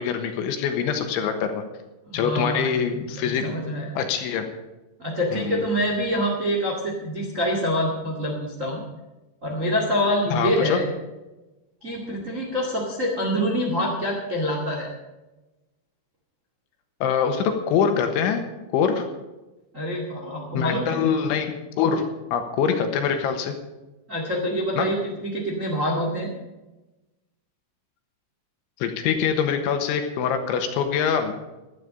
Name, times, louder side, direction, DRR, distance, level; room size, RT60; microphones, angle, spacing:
voice 1, 0.0-1.6 2.1-3.5 4.0-4.5 5.3-5.6 10.3-10.8 17.0-18.4 18.7-19.1 20.5-22.1 22.3-23.6 24.8-24.9 28.8-31.3, left 7 dB, 75° left, 6 dB, 3.6 m, -24 dB
voice 2, 2.1-3.9 5.0-8.8 9.4-10.9 11.8-14.9 19.7-21.0 24.1-26.3, equal, 40° right, 0 dB, 1.0 m, -26 dB
16.5 x 12.0 x 5.1 m, 1.1 s
omnidirectional pair, 5.6 m